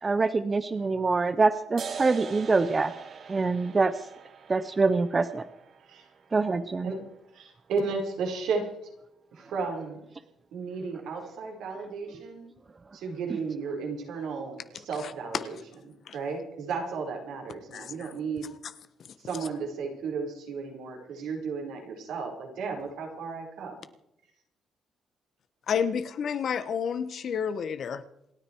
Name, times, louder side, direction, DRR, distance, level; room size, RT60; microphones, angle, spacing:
voice 1, 0.0-2.9 3.3-3.9 4.5-5.4 6.3-6.9, right 3 dB, 30° right, 0.9 m, -25 dB
sound 1, 1.8-8.7, right 6 dB, 55° right, 2.0 m, -44 dB
voice 2, 7.3-8.7 9.3-10.0 10.5-12.5 12.9-15.6 16.1-18.5 19.2-23.8, right 4 dB, 85° right, 4.8 m, -34 dB
voice 3, 17.7-18.1 25.7-28.0, left 7 dB, 60° left, 1.3 m, -30 dB
27.5 x 9.9 x 4.7 m
cardioid pair, 90°, 0 cm